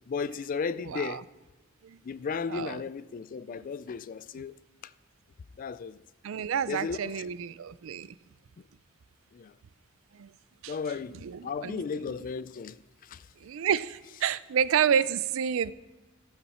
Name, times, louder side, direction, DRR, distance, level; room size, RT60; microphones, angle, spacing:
voice 1, 0.1-1.3 2.0-4.6 4.8-4.9 5.6-6.0 6.7-7.2 9.3-9.5 10.7-13.2, left 5 dB, 40° left, 0.3 m, -35 dB
voice 2, 0.9-1.2 1.8-2.0 2.5-2.8 6.2-8.1 10.2-10.3 10.6-10.7 11.2-11.8 13.4-15.7, right 8 dB, 70° right, 0.4 m, -29 dB
14.5 x 7.5 x 4.2 m
head